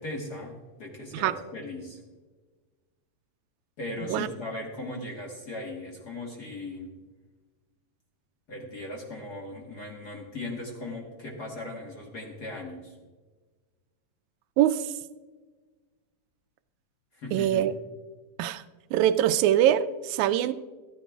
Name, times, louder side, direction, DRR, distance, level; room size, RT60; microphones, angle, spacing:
voice 1, 0.0-2.0 3.8-7.0 8.5-12.9 17.1-17.6, left 2 dB, 45° left, -1 dB, 1.3 m, -38 dB
voice 2, 14.6-14.9 17.3-17.7 18.4-18.6 18.9-20.5, right 11 dB, 80° right, 11 dB, 1.8 m, -23 dB
15.5 x 13.5 x 2.3 m, 1.3 s
omnidirectional pair, 3.5 m